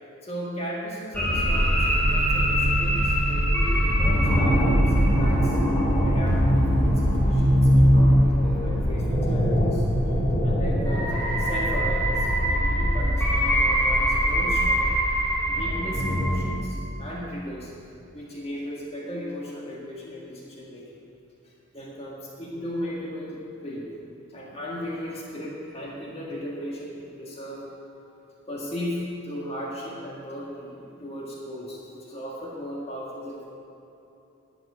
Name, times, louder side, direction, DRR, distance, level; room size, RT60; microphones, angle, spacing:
voice 1, 0.2-5.6 6.0-9.8 10.4-11.1 11.4-14.8 15.5-17.7 18.1-21.0 21.4-23.9 24.3-27.8 28.5-33.5, equal, 25° left, -4 dB, 1.7 m, -36 dB
sound 1, 1.1-16.4, equal, 5° left, 2.4 m, -21 dB
11.5 x 6.2 x 9.0 m, 2.9 s
head